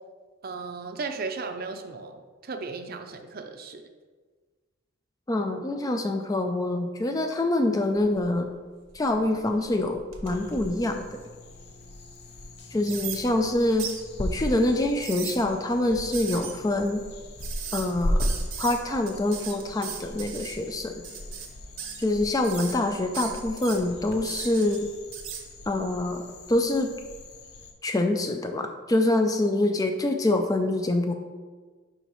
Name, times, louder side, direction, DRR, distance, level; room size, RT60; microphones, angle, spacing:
voice 1, 0.4-3.8, right 4 dB, 45° right, 6 dB, 0.5 m, -36 dB
voice 2, 5.3-8.5 8.9-11.2 12.7-13.9 14.2-17.0 17.7-18.3 18.6-21.0 22.0-24.9 25.7-26.9 27.8-31.1, left 2 dB, 15° left, 5 dB, 0.3 m, -25 dB
sound 1, 7.9-8.4 8.9-11.5 12.0-12.1 12.8-13.2 13.8-14.0 14.8-15.4 16.1-16.5 17.4-17.9 18.2-18.8 19.1-20.5 21.0-21.5 21.8-22.1 22.4-22.7 23.1-23.8 24.2-24.8 25.1-25.4, right 8 dB, 80° right, 1.0 m, -37 dB
sound 2, 10.2-27.7, equal, 50° left, 0.7 m, -37 dB
11.0 x 4.0 x 3.1 m, 1.4 s
head